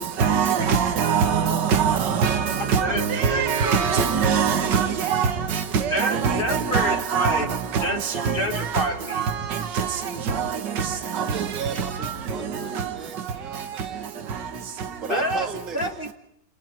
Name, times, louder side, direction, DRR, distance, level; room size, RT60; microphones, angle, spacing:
voice 1, 0.2-5.3 5.7-7.4 7.7-7.9 8.1-8.4 8.7-8.9 9.1-9.2 9.5-9.9 10.3-10.5, right 6 dB, 80° right, 2.1 m, -22 dB
voice 2, 2.6-3.9 5.9-7.5 7.8-8.0 8.3-9.3 15.1-15.5 15.7-16.1, equal, 30° left, 2.0 m, -28 dB
voice 3, 11.1-14.1 15.0-15.9, right 6 dB, 45° right, 3.0 m, -35 dB
29.0 x 29.0 x 4.6 m
omnidirectional pair, 1.9 m